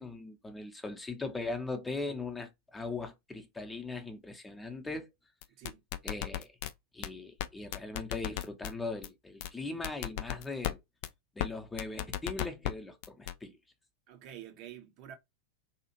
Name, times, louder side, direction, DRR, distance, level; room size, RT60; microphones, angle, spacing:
voice 1, 0.0-5.1 6.0-6.5 6.9-10.8 11.4-13.5, left 3 dB, 10° left, 0.6 m, -39 dB
sound 1, 5.4-6.7 7.0-7.1 7.4-7.5 7.7-8.7 9.0-9.1 9.4-9.5 9.8-10.7 11.0-11.1 11.4-11.5 11.8-12.7 13.0-13.3, left 13 dB, 50° left, 0.3 m, -34 dB
voice 2, 5.5-5.8 14.1-15.2, right 11 dB, 40° right, 0.6 m, -48 dB
2.8 x 2.4 x 2.8 m
figure-of-eight pair, 90°, 0 cm